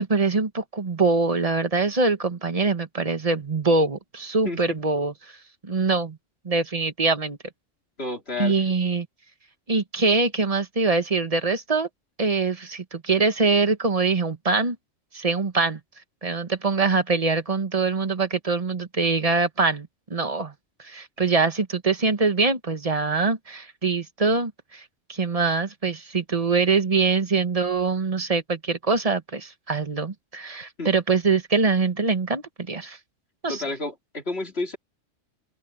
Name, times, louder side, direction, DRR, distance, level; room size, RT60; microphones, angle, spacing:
voice 1, 0.0-5.1 5.6-6.2 6.4-7.4 8.4-9.1 9.7-11.9 12.2-14.8 15.1-15.8 16.2-20.5 20.8-33.0 33.4-33.6, right 4 dB, 30° right, 1.3 m, -23 dB
voice 2, 4.4-4.8 8.0-8.5 30.8-30.9 33.5-34.8, left 3 dB, 55° left, 3.3 m, -30 dB
omnidirectional pair, 1.3 m